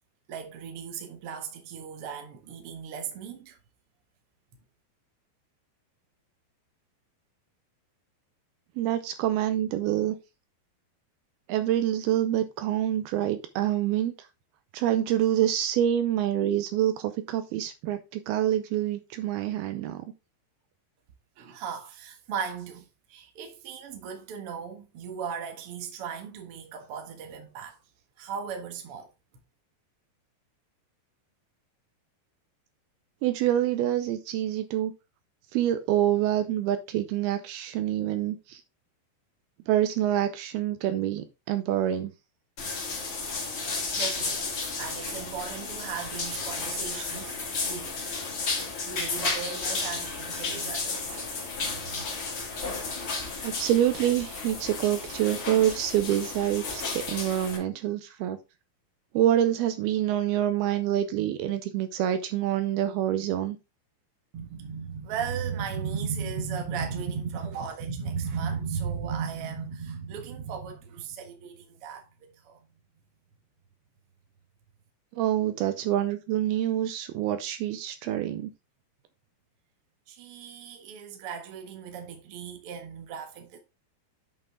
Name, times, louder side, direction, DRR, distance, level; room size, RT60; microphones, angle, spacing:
voice 1, 0.3-3.6 21.4-27.8 28.2-29.1 44.0-47.4 47.7-47.9 48.8-52.0 64.3-72.6 80.1-83.6, right 6 dB, 60° right, 1.5 m, -36 dB
voice 2, 8.8-10.2 11.5-14.1 14.7-20.1 33.2-34.9 35.5-38.6 39.7-42.1 53.4-58.4 59.1-63.6 75.1-78.5, right 12 dB, 80° right, 2.4 m, -26 dB
sound 1, 42.6-57.6, left 4 dB, 40° left, 2.4 m, -33 dB
8.4 x 5.5 x 3.6 m
omnidirectional pair, 4.8 m